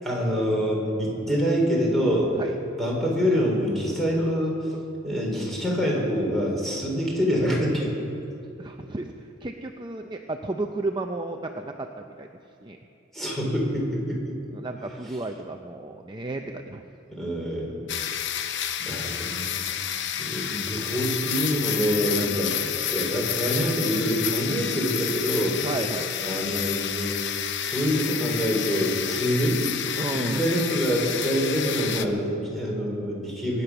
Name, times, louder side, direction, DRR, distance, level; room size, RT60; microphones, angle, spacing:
voice 1, 0.0-2.3 2.8-4.6 5.0-7.9 13.1-14.3 15.0-15.2 17.1-17.8 18.8-19.6 20.2-25.6 26.2-27.3 27.6-29.6 30.1-33.6, equal, ahead, -3 dB, 3.9 m, -26 dB
voice 2, 8.6-9.1 9.4-12.3 12.6-12.8 14.5-16.8 22.3-22.5 25.6-26.1 30.0-30.4, right 2 dB, 25° right, 4 dB, 0.6 m, -33 dB
sound 1, 17.9-32.1, left 9 dB, 60° left, 0.7 m, -30 dB
22.5 x 9.7 x 6.1 m, 2.7 s
head